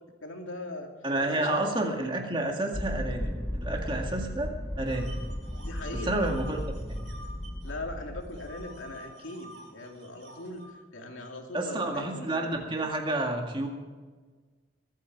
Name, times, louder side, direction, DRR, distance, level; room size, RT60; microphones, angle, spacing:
voice 1, 0.2-0.9 1.3-1.6 5.6-6.1 7.6-12.3, left 2 dB, 85° left, 2 dB, 2.6 m, -40 dB
voice 2, 1.0-5.1 6.0-7.1 11.5-13.7, right 2 dB, 25° right, 2 dB, 2.0 m, -30 dB
sound 1, 2.7-9.0, left 1 dB, 10° left, 0.5 m, -35 dB
sound 2, 4.9-7.7 8.0-10.7, right 1 dB, 60° right, 4.4 m, -49 dB
22.5 x 9.3 x 4.7 m, 1.4 s
head